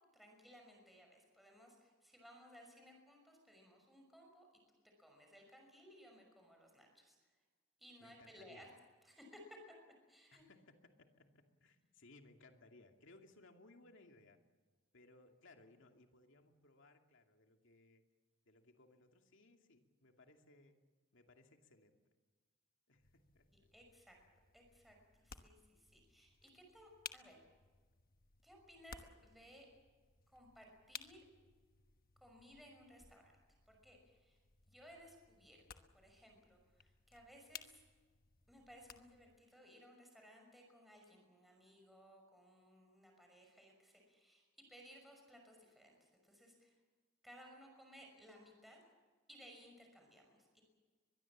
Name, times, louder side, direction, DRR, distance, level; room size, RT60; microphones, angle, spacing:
voice 1, 0.1-7.2 7.8-8.7 9.0-9.4 10.1-10.4 23.7-24.2 24.5-27.4 28.4-29.7 30.3-31.2 32.2-33.3 33.7-34.4 34.7-37.8 38.5-46.7 47.2-48.8 49.3-50.6, equal, ahead, 1 dB, 5.9 m, -61 dB
voice 2, 8.0-8.7 10.3-14.4 14.9-18.0 18.4-20.8 21.1-22.0 22.9-23.7, left 2 dB, 65° left, 4 dB, 2.5 m, -64 dB
sound 1, 23.0-39.4, left 7 dB, 45° left, 1.2 m, -59 dB
24.0 x 21.5 x 7.4 m, 1.4 s
head